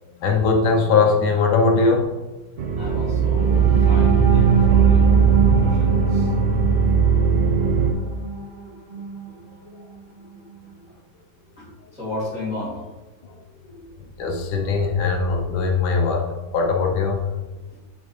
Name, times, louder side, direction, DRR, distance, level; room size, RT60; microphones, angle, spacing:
voice 1, 0.1-2.1 14.2-16.2 16.5-17.2, left 4 dB, 80° left, 1 dB, 1.6 m, -20 dB
sound 1, 2.6-7.9, right 6 dB, 90° right, 0.5 m, -18 dB
voice 2, 2.8-5.2 5.6-6.3 10.9-11.0 11.6-12.8, left 2 dB, 5° right, -7 dB, 1.9 m, -34 dB
sound 2, 3.3-9.3 9.8-9.9 10.3-10.5, right 3 dB, 25° right, 0.6 m, -26 dB
8.5 x 5.1 x 3.1 m, 1.2 s
omnidirectional pair, 2.1 m